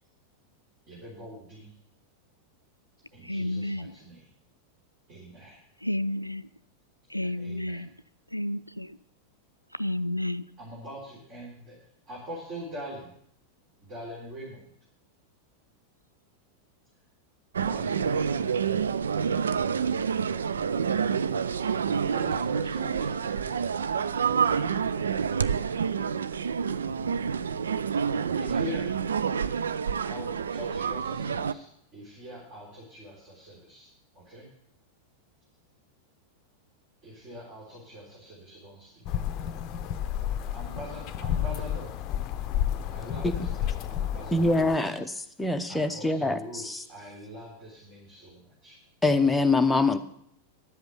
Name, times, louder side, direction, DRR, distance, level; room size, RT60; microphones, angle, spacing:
voice 1, 0.9-1.7 3.1-4.3 5.1-5.6 7.2-7.9 10.6-11.8 12.1-13.1 13.8-14.6 17.5-18.5 22.0-23.7 28.3-28.9 30.0-31.7 31.9-33.9 34.1-34.5 37.0-39.2 40.5-42.0 42.9-45.0 45.7-48.7, equal, 35° right, -5 dB, 3.8 m, -43 dB
voice 2, 3.2-3.9 5.8-6.5 7.1-7.9 8.3-9.0 9.7-10.5, left 1 dB, 90° left, 16 dB, 0.3 m, -31 dB
sound 1, 17.5-31.5, right 6 dB, 70° right, 0.4 m, -28 dB
sound 2, 39.1-44.8, left 10 dB, 35° left, 0.7 m, -31 dB
voice 3, 44.3-45.0 45.4-46.4 49.0-50.0, left 3 dB, 5° left, 6 dB, 0.8 m, -23 dB
11.0 x 7.9 x 6.9 m, 0.71 s
figure-of-eight pair, 90°, 0 cm